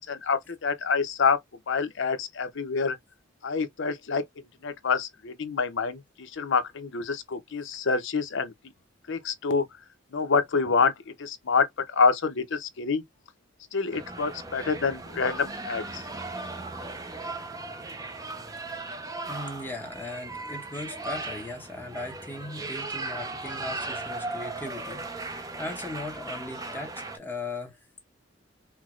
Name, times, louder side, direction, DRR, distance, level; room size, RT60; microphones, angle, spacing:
voice 1, 0.0-1.4 1.7-3.0 3.4-4.2 4.6-8.5 9.1-9.6 10.1-10.9 11.2-13.0 13.7-16.0, left 5 dB, 65° left, 0.6 m, -27 dB
sound 1, 13.9-27.2, right 2 dB, 15° right, 0.6 m, -37 dB
voice 2, 19.3-28.0, left 2 dB, 10° left, 1.0 m, -38 dB
4.5 x 2.1 x 2.4 m
head